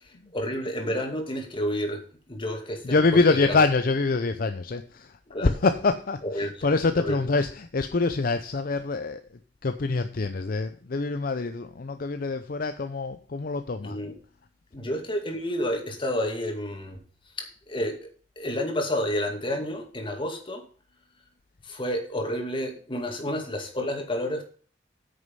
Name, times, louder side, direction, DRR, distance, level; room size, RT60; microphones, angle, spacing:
voice 1, 0.3-3.6 5.3-5.5 6.2-6.5 7.0-7.2 13.8-14.1 14.7-17.0 17.4-18.0 18.4-20.6 21.6-24.4, equal, 30° left, 2.3 m, -30 dB
voice 2, 2.8-14.0, left 3 dB, 55° left, 0.6 m, -25 dB
9.4 x 6.6 x 5.5 m
head